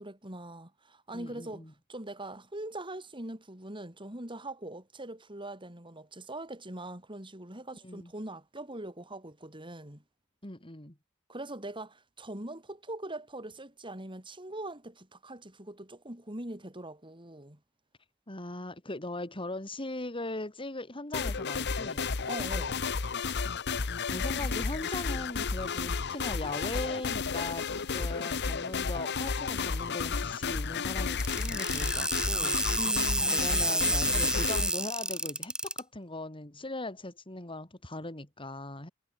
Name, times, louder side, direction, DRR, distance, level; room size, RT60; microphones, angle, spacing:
voice 1, 0.0-10.0 11.3-17.6 22.3-22.8 32.7-33.4, right 1 dB, 25° right, 5.7 m, -42 dB
voice 2, 1.1-1.7 7.8-8.1 10.4-10.9 18.3-22.1 23.8-32.6 33.3-38.9, left 2 dB, 25° left, 3.1 m, -39 dB
sound 1, 21.1-34.7, left 5 dB, 55° left, 1.0 m, -32 dB
sound 2, 31.2-35.8, right 1 dB, 5° right, 1.6 m, -29 dB
head